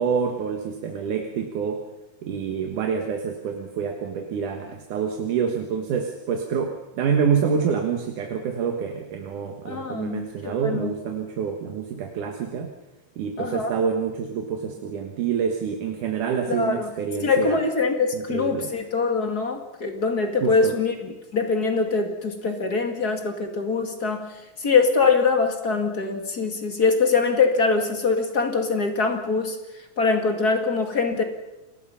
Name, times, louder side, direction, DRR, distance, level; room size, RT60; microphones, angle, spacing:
voice 1, 0.0-1.8 2.2-12.7 13.2-17.6 18.1-18.7 20.4-20.8, right 6 dB, 80° right, 3 dB, 3.0 m, -27 dB
voice 2, 9.6-10.9 13.4-13.7 16.5-16.9 17.2-24.3 24.6-29.6 30.0-31.2, left 4 dB, 35° left, 5 dB, 2.4 m, -23 dB
29.0 x 20.5 x 5.7 m, 1.0 s
omnidirectional pair, 3.6 m